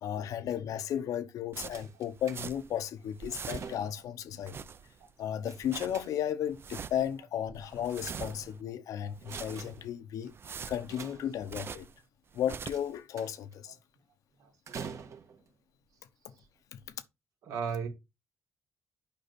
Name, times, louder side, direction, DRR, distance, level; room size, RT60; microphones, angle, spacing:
voice 1, 0.0-4.6 5.2-10.3 10.7-11.9 12.3-13.7 16.7-16.8, left 10 dB, 85° left, 0.9 m, -34 dB
sound 1, 1.5-2.8 3.1-3.9 4.3-5.1 5.4-6.1 6.5-7.2 7.5-8.6 9.1-9.9 10.3-12.0 12.3-13.0, right 6 dB, 45° right, 0.5 m, -44 dB
sound 2, 1.7-2.7 3.2-4.1 5.5-6.5 7.5-8.8 9.2-10.0 10.7-11.7 12.7-13.5 14.7-15.5 16.3-16.4 16.8-16.9, right 6 dB, 60° right, 1.5 m, -46 dB
voice 2, 17.4-17.9, right 6 dB, 85° right, 2.7 m, -38 dB
8.6 x 5.4 x 4.2 m
cardioid pair, 110°, 6 cm